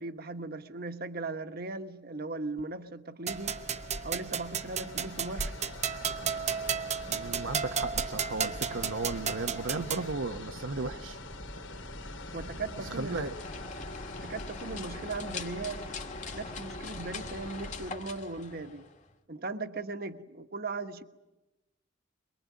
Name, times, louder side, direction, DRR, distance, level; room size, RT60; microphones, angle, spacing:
voice 1, 0.0-3.6 4.0-5.5 12.3-13.3 14.2-15.9 16.3-18.8 19.3-21.0, right 3 dB, 50° right, 8 dB, 1.3 m, -38 dB
sound 1, 3.3-17.9, left 1 dB, 75° left, 2.7 m, -43 dB
sound 2, 3.3-10.1, right 7 dB, 35° right, 0.9 m, -33 dB
voice 2, 7.1-11.2 12.8-13.3, right 3 dB, 80° right, 7 dB, 1.0 m, -35 dB
sound 3, 13.0-19.1, left 4 dB, 40° left, 1.9 m, -42 dB
23.5 x 23.0 x 9.5 m, 1.0 s
head